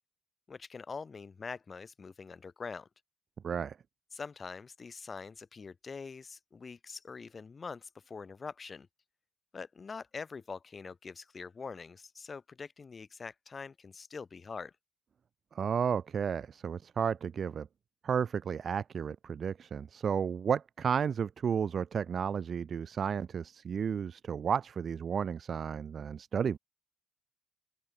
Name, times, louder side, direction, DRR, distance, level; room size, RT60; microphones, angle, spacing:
voice 1, 0.5-2.9 4.1-8.9 9.5-14.7, left 5 dB, 35° left, 2.0 m, -44 dB
voice 2, 3.4-3.8 15.5-17.7 18.0-26.6, right 7 dB, 50° right, 0.5 m, -32 dB
open air
cardioid pair, 90°, 0 cm